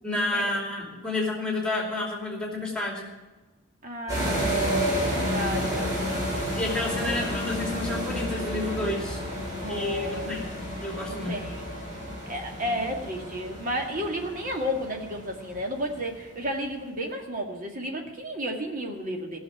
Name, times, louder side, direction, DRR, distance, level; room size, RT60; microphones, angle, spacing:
voice 1, 0.0-3.1 6.5-9.2 9.7-10.4 10.8-11.4, left 2 dB, 5° left, -1 dB, 2.7 m, -30 dB
voice 2, 3.8-6.6 7.0-7.3 9.6-10.6 11.1-11.7 12.2-19.4, equal, 40° right, 2 dB, 2.1 m, -32 dB
sound 1, 4.1-16.2, equal, 15° right, 5.7 m, -31 dB
15.5 x 6.7 x 9.7 m, 1.2 s
head